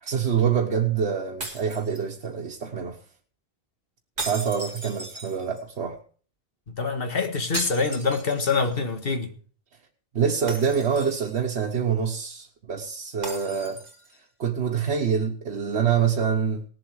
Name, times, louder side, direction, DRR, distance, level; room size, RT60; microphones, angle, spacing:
voice 1, 0.0-3.0 4.2-6.0 10.1-13.8 14.4-16.6, right 7 dB, 85° right, 1.5 m, -25 dB
sound 1, 1.4-2.5 4.2-5.7 7.5-8.7 9.1-9.2 10.5-11.6 13.2-14.2, right 2 dB, 40° right, 2.9 m, -37 dB
voice 2, 6.8-9.3, left 4 dB, 60° left, 1.8 m, -25 dB
18.5 x 7.7 x 4.8 m
omnidirectional pair, 1.1 m